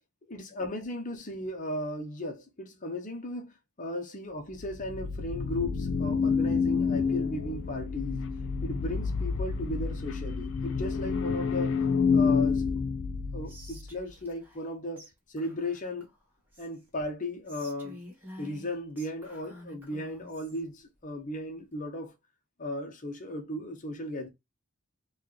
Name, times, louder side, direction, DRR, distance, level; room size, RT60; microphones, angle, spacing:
voice 1, 0.3-8.2 8.6-11.8 12.1-12.8 13.3-16.1 16.6-18.0 18.4-22.1 22.6-24.3, left 1 dB, 35° left, 0.8 m, -36 dB
sound 1, 4.5-13.9, left 5 dB, 55° left, 0.4 m, -29 dB
Whispering, 13.5-14.7 15.0-15.1 15.4-16.9 17.4-20.6, equal, 10° right, 1.1 m, -50 dB
4.2 x 2.3 x 3.1 m
head